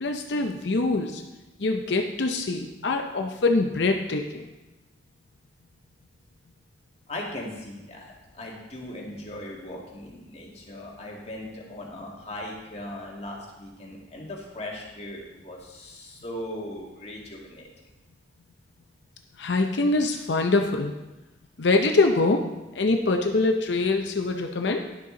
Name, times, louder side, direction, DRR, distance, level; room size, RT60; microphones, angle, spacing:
voice 1, 0.0-1.2 1.6-4.5 19.4-20.9 21.6-22.4 22.7-24.9, left 3 dB, 70° left, 4 dB, 0.6 m, -24 dB
voice 2, 7.1-17.7, left 1 dB, 35° left, -2 dB, 1.8 m, -38 dB
11.5 x 6.6 x 3.8 m, 1.1 s
head